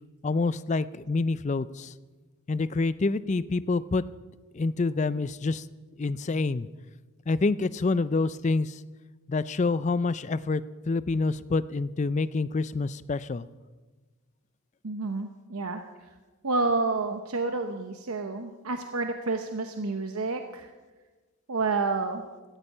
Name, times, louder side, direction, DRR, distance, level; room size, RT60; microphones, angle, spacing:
voice 1, 0.2-1.9 2.5-4.0 4.5-5.7 6.0-6.7 7.3-8.8 9.3-13.5, left 3 dB, 30° left, 16 dB, 0.4 m, -27 dB
voice 2, 14.8-15.8 16.4-20.7 21.5-22.2, right 3 dB, 80° right, 6 dB, 0.9 m, -29 dB
17.0 x 13.5 x 5.5 m, 1.3 s
head